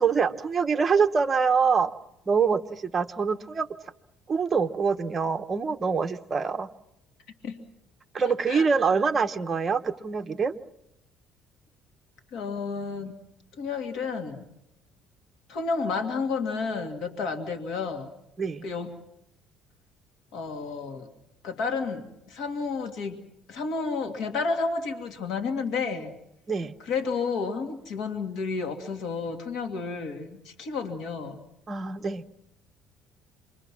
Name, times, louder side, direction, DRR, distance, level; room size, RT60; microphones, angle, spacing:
voice 1, 0.0-1.9 2.3-3.7 4.3-6.7 8.1-10.6 18.4-18.7 26.5-26.7 31.7-32.2, right 5 dB, 25° right, 6 dB, 0.9 m, -25 dB
voice 2, 12.3-13.2 13.6-14.4 15.5-18.1 18.6-18.9 20.3-21.1 21.4-23.2 23.5-26.1 26.8-31.4, left 4 dB, 65° left, 4 dB, 2.3 m, -31 dB
27.0 x 23.0 x 6.1 m, 0.82 s
cardioid pair, 145°, 0 cm